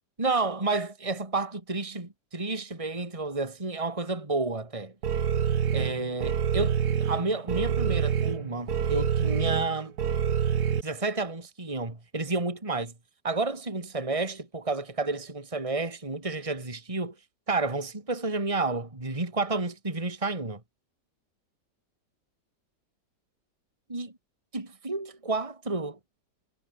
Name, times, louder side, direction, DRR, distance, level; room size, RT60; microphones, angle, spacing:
voice 1, 0.2-4.9 5.7-9.9 10.8-12.9 13.2-17.1 17.5-20.6 23.9-24.1 24.5-26.0, right 3 dB, 20° right, 2.9 m, -30 dB
sound 1, 5.0-10.8, right 8 dB, 60° right, 1.8 m, -27 dB
omnidirectional pair, 1.9 m